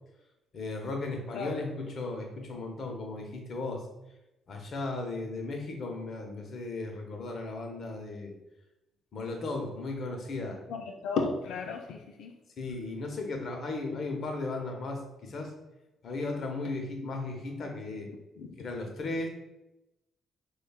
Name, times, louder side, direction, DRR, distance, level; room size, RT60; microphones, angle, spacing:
voice 1, 0.5-3.9 4.5-8.3 9.1-10.6 12.6-15.5 16.0-18.1 18.6-19.3, left 2 dB, 55° left, 2 dB, 0.8 m, -36 dB
voice 2, 10.7-12.3 18.4-18.6, left 4 dB, 80° left, 3 dB, 0.4 m, -34 dB
5.0 x 2.3 x 2.3 m, 0.94 s
cardioid pair, 90°, 0 cm